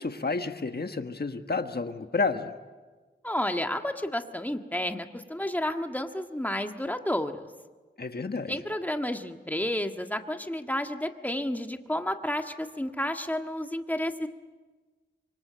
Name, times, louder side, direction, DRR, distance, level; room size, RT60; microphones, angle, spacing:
voice 1, 0.0-2.5 8.0-8.6, left 4 dB, 55° left, 7 dB, 1.4 m, -30 dB
voice 2, 3.2-7.5 8.5-14.3, left 1 dB, 10° left, 5 dB, 1.7 m, -31 dB
26.0 x 24.0 x 7.6 m, 1.3 s
wide cardioid pair, 65°, 20 cm